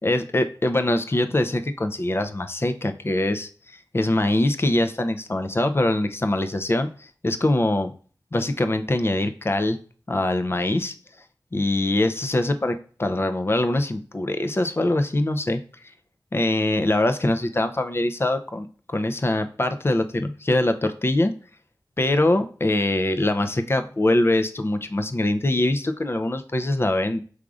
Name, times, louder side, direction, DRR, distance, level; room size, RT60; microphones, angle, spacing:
voice 1, 0.0-7.9 8.3-9.8 10.1-10.9 11.5-15.6 16.3-21.3 22.0-27.2, left 1 dB, 35° left, 8 dB, 0.6 m, -23 dB
4.9 x 3.6 x 2.4 m, 0.42 s
wide cardioid pair, 60°, 7 cm